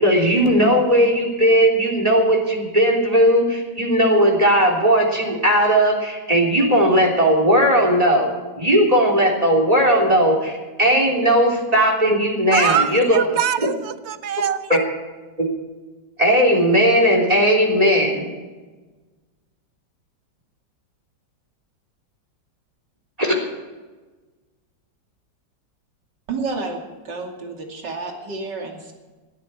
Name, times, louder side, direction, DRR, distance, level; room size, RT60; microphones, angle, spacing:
voice 1, 0.0-8.3 8.6-13.2 14.7-14.8 15.4-15.5 16.2-18.3 23.2-23.3, equal, 20° right, 3.4 m, -17 dB
voice 2, 12.5-14.8, right 9 dB, 55° right, 0.8 m, -23 dB
voice 3, 26.3-28.9, right 3 dB, 70° right, 3.2 m, -30 dB
19.5 x 14.0 x 4.4 m
omnidirectional pair, 2.0 m